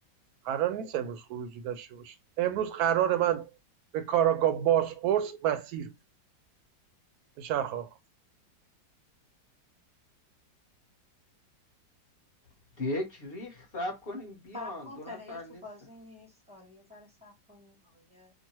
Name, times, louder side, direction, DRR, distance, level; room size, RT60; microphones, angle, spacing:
voice 1, 0.4-3.5 3.9-5.9 7.4-7.9, right 10 dB, 70° right, 1.0 m, -28 dB
voice 2, 12.8-15.6, left 1 dB, 40° left, 1.0 m, -37 dB
voice 3, 14.5-18.3, left 2 dB, 5° right, 0.6 m, -47 dB
3.0 x 2.1 x 2.9 m
omnidirectional pair, 1.9 m